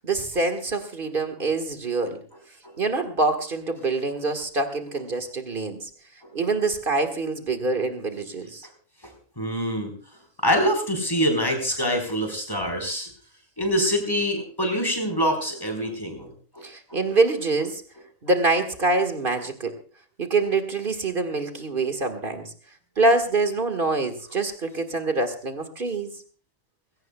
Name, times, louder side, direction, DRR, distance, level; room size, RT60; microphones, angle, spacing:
voice 1, 0.0-2.2 2.8-5.9 6.3-8.7 16.6-17.8 18.2-19.8 20.2-22.5 23.0-26.1, right 3 dB, 45° right, 8 dB, 1.8 m, -25 dB
voice 2, 9.0-9.9 10.4-13.1 13.6-16.3 16.5-16.6, equal, 15° left, 4 dB, 4.3 m, -25 dB
20.5 x 17.0 x 2.3 m, 0.41 s
omnidirectional pair, 1.3 m